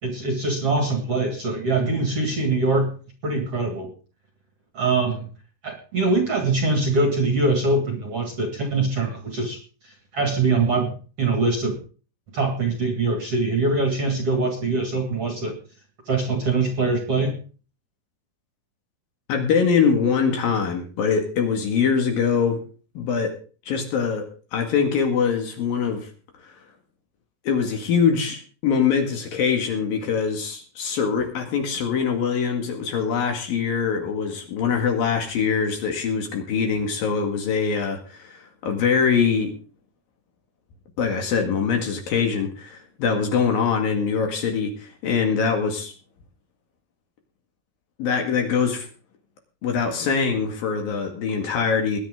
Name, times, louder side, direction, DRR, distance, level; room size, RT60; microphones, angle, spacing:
voice 1, 0.0-2.9 3.2-3.9 4.7-5.3 5.6-11.8 12.3-15.6 16.1-17.4, right 3 dB, 45° right, 3 dB, 2.3 m, -23 dB
voice 2, 19.3-22.6 23.0-23.3 23.7-26.1 26.4-26.5 27.5-39.5 41.0-45.9 48.0-48.9 49.6-52.0, left 6 dB, 60° left, 3 dB, 3.5 m, -23 dB
20.5 x 10.5 x 3.8 m, 0.37 s
omnidirectional pair, 5.2 m